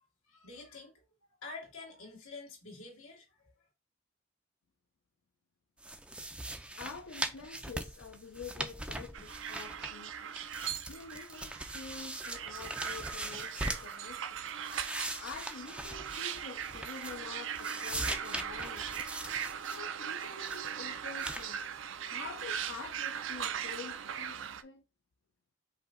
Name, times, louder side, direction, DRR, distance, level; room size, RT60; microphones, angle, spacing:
voice 1, 0.3-0.9 1.4-3.5, left 3 dB, 90° left, 2.0 m, -47 dB
sound 1, 5.8-10.1 10.4-14.0 14.4-17.3 17.6-19.8 20.2-20.7 21.2-21.5, right 1 dB, 5° right, 0.4 m, -41 dB
voice 2, 6.8-10.3 10.8-14.4 15.2-19.0 19.6-21.8 22.1-24.8, left 5 dB, 70° left, 0.5 m, -47 dB
sound 2, 9.1-24.6, right 8 dB, 65° right, 0.4 m, -39 dB
5.1 x 2.8 x 3.7 m
head